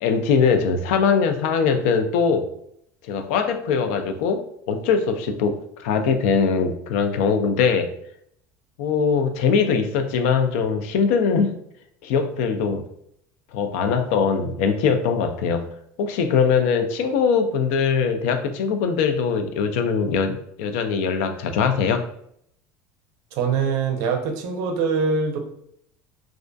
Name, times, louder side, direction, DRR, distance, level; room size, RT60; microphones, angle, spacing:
voice 1, 0.0-2.5 3.1-7.9 8.8-11.5 12.0-12.8 13.5-15.7 16.0-22.1, left 6 dB, 85° left, 7 dB, 0.4 m, -21 dB
voice 2, 23.3-25.4, right 5 dB, 55° right, 4 dB, 0.4 m, -23 dB
2.5 x 2.3 x 2.2 m, 0.72 s
cardioid pair, 175°, 7 cm